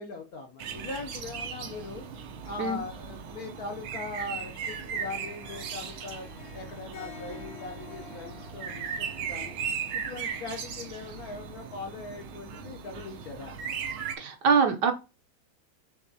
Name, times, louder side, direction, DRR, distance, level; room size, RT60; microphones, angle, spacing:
voice 1, 0.0-2.0 2.4-9.6 9.9-13.6, left 3 dB, 65° left, 3 dB, 0.9 m, -40 dB
sound 1, 0.6-14.2, right 6 dB, 80° right, 1.6 m, -37 dB
Harp, 4.5-9.8, left 7 dB, 85° left, 2.0 m, -49 dB
voice 2, 14.2-14.9, right 5 dB, 65° right, 6 dB, 1.2 m, -23 dB
6.8 x 2.9 x 2.7 m, 0.29 s
omnidirectional pair, 2.2 m